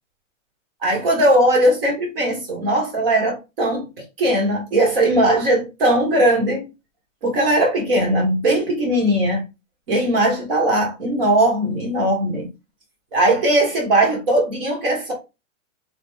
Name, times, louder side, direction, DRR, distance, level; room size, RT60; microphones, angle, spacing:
voice 1, 0.8-3.9 4.2-6.7 7.2-9.4 9.9-12.5 13.1-15.1, right 1 dB, 45° right, 1.5 m, -19 dB
3.1 x 2.3 x 3.1 m
hypercardioid pair, 175°, 39 cm